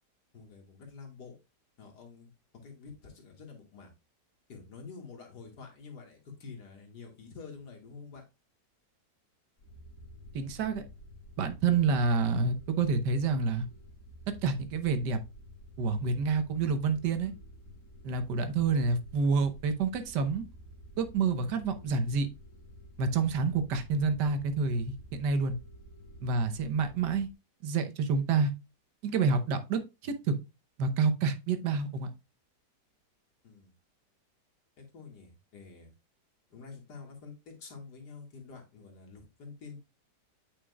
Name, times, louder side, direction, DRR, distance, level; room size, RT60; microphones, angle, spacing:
voice 1, 0.3-1.3 1.8-2.3 2.6-3.9 4.5-8.2 33.4-33.7 34.8-35.9 36.5-39.8, left 5 dB, 75° left, 1 dB, 2.4 m, -48 dB
sound 1, 9.6-27.3, equal, 50° left, 2.2 m, -51 dB
voice 2, 10.3-10.8 11.4-13.7 14.4-15.2 15.8-17.3 18.0-20.4 21.0-22.3 23.0-25.6 26.2-27.3 27.6-28.5 29.0-30.4 30.8-32.1, right 4 dB, 80° right, 9 dB, 1.5 m, -28 dB
8.8 x 5.2 x 2.2 m, 0.26 s
omnidirectional pair, 1.8 m